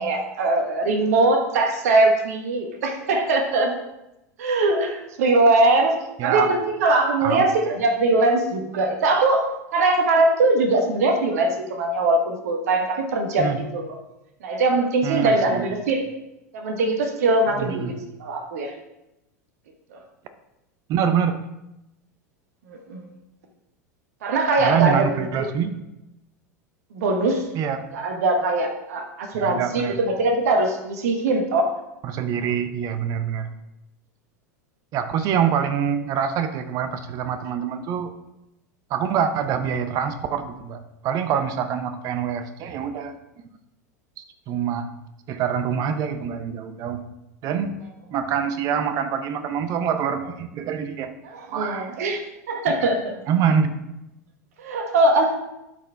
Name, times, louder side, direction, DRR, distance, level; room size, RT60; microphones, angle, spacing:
voice 1, 0.0-3.8 4.4-6.0 6.2-13.8 14.4-16.1 16.5-17.9 18.2-18.7 19.9-20.0 22.7-23.1 24.2-25.0 25.4-25.5 26.9-27.4 27.9-31.7 51.3-53.2 54.6-55.4, right 2 dB, 60° right, 5 dB, 1.2 m, -21 dB
voice 2, 6.2-6.5 7.2-7.4 13.4-13.6 15.0-15.8 17.5-17.9 20.9-21.4 24.6-25.7 27.5-27.8 29.3-30.0 32.0-33.5 34.9-38.1 38.9-43.1 44.5-44.9 45.3-47.0 47.4-47.7 48.1-51.1 51.5-51.9 52.8-52.9 53.3-53.7, right 8 dB, 40° right, 10 dB, 0.7 m, -25 dB
12.0 x 4.4 x 3.4 m, 0.91 s
figure-of-eight pair, 85°, 9 cm